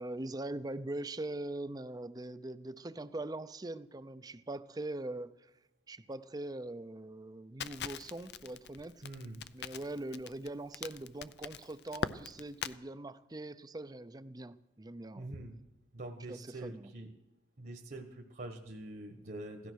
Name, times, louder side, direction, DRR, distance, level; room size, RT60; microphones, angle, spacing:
voice 1, 0.0-5.3 5.9-9.0 9.5-15.3 16.3-16.9, right 2 dB, 20° right, 0.6 m, -42 dB
Crackle, 7.6-12.8, left 6 dB, 65° left, 0.6 m, -42 dB
voice 2, 9.0-9.4 15.2-15.6 15.9-17.1 17.6-19.7, right 1 dB, 50° right, 1.4 m, -45 dB
16.5 x 13.0 x 6.4 m
head